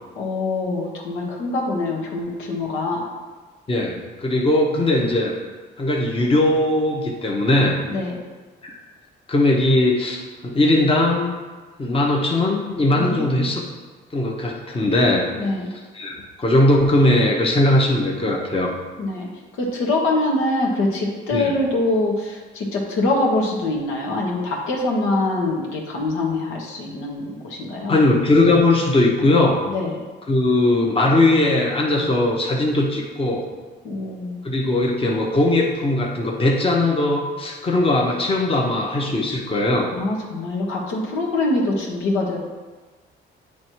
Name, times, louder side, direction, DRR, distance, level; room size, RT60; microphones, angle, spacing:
voice 1, 0.2-3.1 7.8-8.2 12.9-13.5 15.3-15.7 19.0-19.3 19.6-28.0 29.7-30.0 33.8-34.4 39.9-42.4, left 2 dB, 80° left, -2 dB, 1.4 m, -24 dB
voice 2, 3.7-5.3 5.8-7.8 8.6-8.8 9.3-11.3 11.8-13.6 14.1-15.3 15.9-18.7 21.3-21.5 27.9-29.6 30.3-33.5 34.4-39.9, left 1 dB, 25° left, -2 dB, 1.0 m, -19 dB
8.5 x 3.2 x 4.6 m, 1.3 s
cardioid pair, 105°, 20 cm